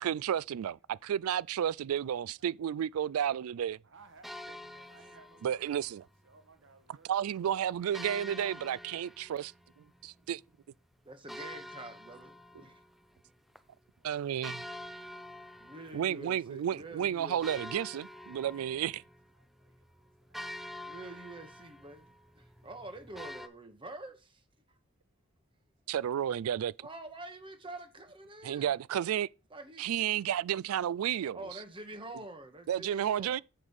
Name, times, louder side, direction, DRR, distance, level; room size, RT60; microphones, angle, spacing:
voice 1, 0.0-3.8 5.4-6.0 7.1-9.5 10.0-10.4 14.0-14.6 15.9-19.0 25.9-26.9 28.4-29.3 29.8-31.6 32.7-33.4, right 9 dB, 90° right, 0.3 m, -32 dB
voice 2, 3.5-5.8 6.2-7.2 19.3-19.9 20.3-20.9 25.8-25.9, right 4 dB, 60° right, 1.5 m, -61 dB
sound 1, 4.2-5.9 7.9-10.4 11.3-13.3 13.6-13.7 14.4-16.4 16.9-17.0 17.4-23.5, left 1 dB, ahead, 0.5 m, -46 dB
voice 3, 11.0-12.8 15.6-17.7 20.8-22.1 22.4-24.4 26.8-28.8 29.5-29.9 31.3-33.4, right 2 dB, 25° right, 1.0 m, -47 dB
7.9 x 5.1 x 5.4 m
head